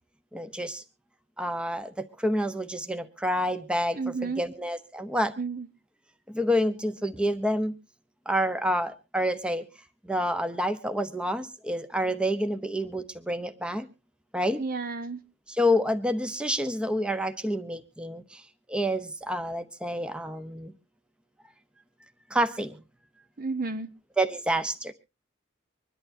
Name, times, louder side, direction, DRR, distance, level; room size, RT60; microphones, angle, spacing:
voice 1, 0.3-0.8 1.4-5.3 6.3-7.7 8.3-9.7 10.0-13.9 14.3-14.6 15.5-18.4 18.7-20.7 22.3-22.8 24.2-24.9, equal, 5° right, 0.8 m, -28 dB
voice 2, 3.9-4.4 5.4-5.7 14.6-15.2 23.4-23.9, right 4 dB, 45° right, 0.9 m, -31 dB
25.0 x 11.5 x 2.6 m
head